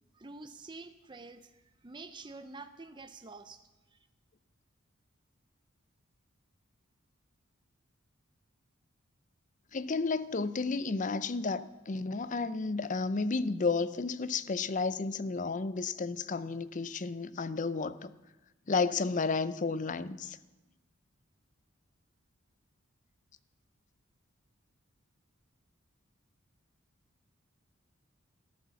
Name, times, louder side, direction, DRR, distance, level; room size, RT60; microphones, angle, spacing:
voice 1, 0.1-1.5 1.8-3.6 3.9-4.0, right 3 dB, 20° right, 0.6 m, -47 dB
voice 2, 9.7-18.1 18.7-20.4, left 4 dB, 40° left, 0.6 m, -32 dB
13.5 x 12.0 x 7.1 m
head